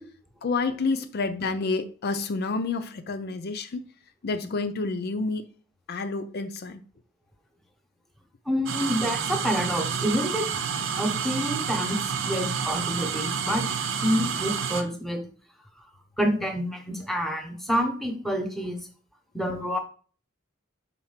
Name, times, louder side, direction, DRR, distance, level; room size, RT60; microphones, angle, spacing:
voice 1, 0.4-3.8 4.2-5.4 5.9-6.8, left 3 dB, 50° left, 0.5 m, -29 dB
voice 2, 8.5-10.5 11.0-12.0 12.2-13.6 14.0-15.2 16.2-18.8 19.3-19.8, equal, ahead, 1.0 m, -27 dB
sound 1, 8.7-14.8, right 6 dB, 70° right, 0.7 m, -29 dB
4.4 x 4.0 x 5.7 m
head